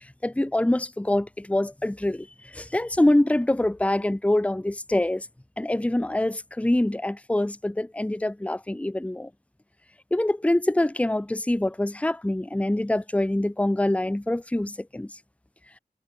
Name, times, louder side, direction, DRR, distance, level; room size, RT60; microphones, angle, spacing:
voice 1, 0.2-5.3 5.6-9.3 10.1-15.1, left 1 dB, 10° left, 0.8 m, -25 dB
wide cardioid pair, 75°, 16 cm